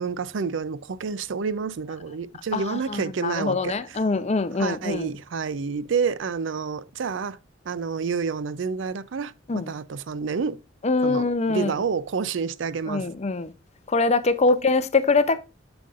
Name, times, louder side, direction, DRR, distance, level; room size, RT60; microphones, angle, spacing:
voice 1, 0.0-3.7 4.6-7.4 7.6-10.6 11.0-13.1, right 5 dB, 70° right, 0.5 m, -29 dB
voice 2, 2.5-5.1 9.5-9.7 10.8-11.7 12.9-13.5 13.9-15.4, left 3 dB, 35° left, 0.6 m, -23 dB
7.5 x 7.0 x 2.4 m
head